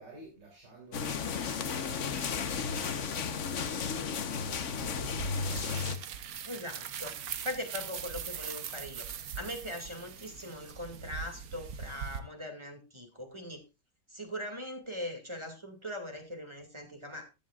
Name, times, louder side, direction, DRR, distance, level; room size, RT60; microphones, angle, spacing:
voice 1, 0.0-1.4 1.8-2.5 2.9-4.9, right 1 dB, 80° right, -2 dB, 3.9 m, -52 dB
sound 1, 0.9-6.0, left 5 dB, 50° left, 1.2 m, -33 dB
sound 2, 4.8-12.2, right 7 dB, 60° right, 1.4 m, -41 dB
voice 2, 6.4-7.2 7.4-9.1 9.4-13.6 14.1-17.3, left 1 dB, 15° right, 5 dB, 2.3 m, -40 dB
15.0 x 11.0 x 2.4 m, 0.25 s
omnidirectional pair, 1.9 m